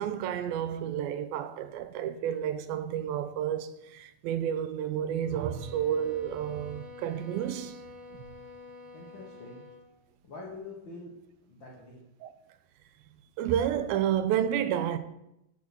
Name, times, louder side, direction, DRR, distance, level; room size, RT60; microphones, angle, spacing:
voice 1, 0.0-7.8 12.2-12.3 13.4-15.0, right 10 dB, 85° right, 2.5 m, -30 dB
sound 1, 5.2-9.9, left 4 dB, 55° right, 3.1 m, -48 dB
voice 2, 8.9-9.6 10.2-11.1 11.4-12.0, left 3 dB, 55° left, 1.3 m, -45 dB
11.0 x 4.8 x 6.0 m
omnidirectional pair, 4.2 m